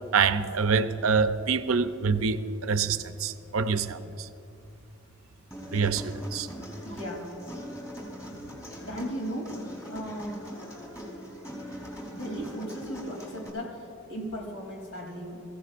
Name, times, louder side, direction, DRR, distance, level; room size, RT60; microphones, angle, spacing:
voice 1, 0.1-4.0 5.7-6.5, right 5 dB, 80° right, 0.6 m, -26 dB
Human voice, 5.5-13.5, equal, 15° left, 3.2 m, -41 dB
voice 2, 6.8-7.3 8.8-9.6 9.9-10.4 12.1-15.4, equal, 85° left, 3.1 m, -36 dB
24.0 x 15.5 x 2.5 m
head